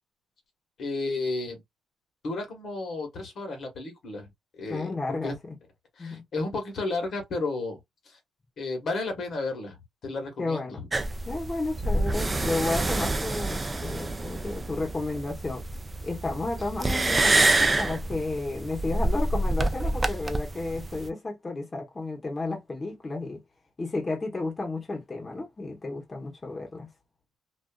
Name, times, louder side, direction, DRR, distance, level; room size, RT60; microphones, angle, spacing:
voice 1, 0.8-1.6 2.2-5.4 6.0-7.8 8.1-8.2 8.6-10.9, left 3 dB, 60° left, 1.1 m, -33 dB
voice 2, 4.7-5.3 6.0-6.2 10.4-10.8 11.2-15.6 16.0-23.4 23.8-26.9, left 2 dB, 25° left, 0.9 m, -32 dB
sound 1, 10.9-21.1, right 2 dB, 20° right, 0.4 m, -27 dB
2.4 x 2.4 x 2.2 m
cardioid pair, 90°, 0 cm